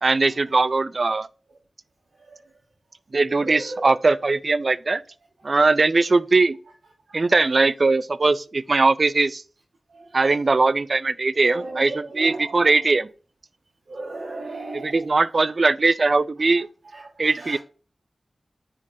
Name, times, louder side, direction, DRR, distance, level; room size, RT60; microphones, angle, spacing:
voice 1, 0.0-1.3 3.1-5.0 5.4-6.6 7.1-9.4 10.1-13.1 14.7-16.7 17.2-17.6, right 3 dB, 60° right, 0.4 m, -20 dB
voice 2, 3.4-3.9 7.1-7.3 9.9-10.0 11.4-12.7 13.9-15.0 16.9-17.6, right 2 dB, 85° right, 1.4 m, -35 dB
9.8 x 3.8 x 4.2 m
cardioid pair, 40°, 0 cm